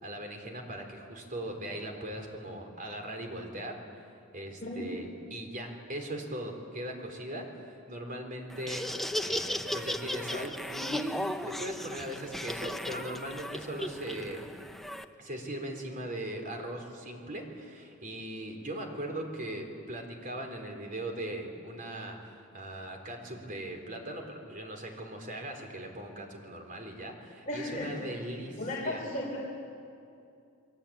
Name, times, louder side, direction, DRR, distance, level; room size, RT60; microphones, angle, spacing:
voice 1, 0.0-3.8 4.3-8.9 9.2-14.5 15.2-29.0, right 1 dB, 40° right, 3 dB, 3.9 m, -39 dB
voice 2, 4.6-4.9 27.5-28.1 28.6-29.4, left 1 dB, 35° left, -5 dB, 3.8 m, -35 dB
Laughter, 8.5-15.0, left 1 dB, ahead, 0.7 m, -36 dB
29.5 x 21.5 x 8.8 m, 2.6 s
head